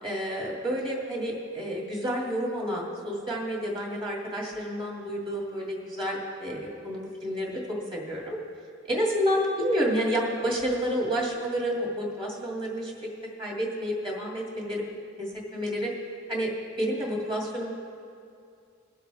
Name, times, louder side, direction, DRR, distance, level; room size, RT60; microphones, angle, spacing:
voice 1, 0.0-7.6 7.9-8.4 8.9-12.9 13.4-14.8 15.2-15.9 16.3-16.5 16.8-17.7, equal, 25° right, -3 dB, 2.5 m, -29 dB
21.5 x 7.5 x 3.5 m, 2.4 s
head